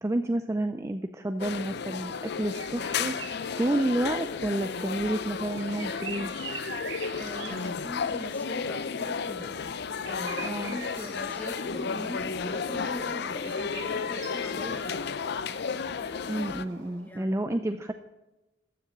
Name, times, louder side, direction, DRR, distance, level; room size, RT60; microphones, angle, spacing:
voice 1, 0.0-6.3 10.4-10.8 16.3-17.9, right 1 dB, 15° right, 8 dB, 0.4 m, -30 dB
sound 1, 1.3-17.2, right 3 dB, 85° right, 3.6 m, -45 dB
sound 2, 1.4-16.6, left 6 dB, 60° left, 0.5 m, -33 dB
voice 2, 7.2-15.1 17.0-17.4, equal, 10° left, 5 dB, 1.4 m, -41 dB
sound 3, 10.2-10.9 11.1-11.3 11.6-12.2 12.4-12.6, right 1 dB, 65° right, 2.4 m, -57 dB
14.5 x 6.9 x 8.5 m, 1.0 s
head